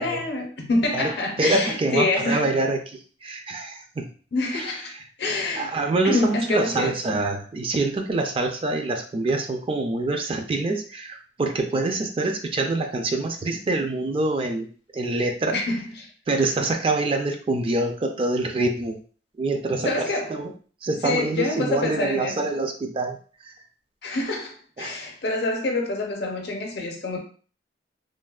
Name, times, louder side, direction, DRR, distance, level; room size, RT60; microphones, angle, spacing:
voice 1, 0.0-2.5 4.3-4.9 5.2-5.7 6.0-7.0 15.5-16.1 19.8-20.3 21.0-22.5 24.0-27.2, left 2 dB, 65° left, 0.6 m, -26 dB
voice 2, 1.4-4.1 4.5-4.6 5.6-14.7 14.9-15.6 16.3-19.0 19.4-20.5 20.8-23.2 23.4-23.5 24.8-25.0, right 2 dB, 30° right, 0.4 m, -25 dB
3.2 x 2.1 x 2.3 m
head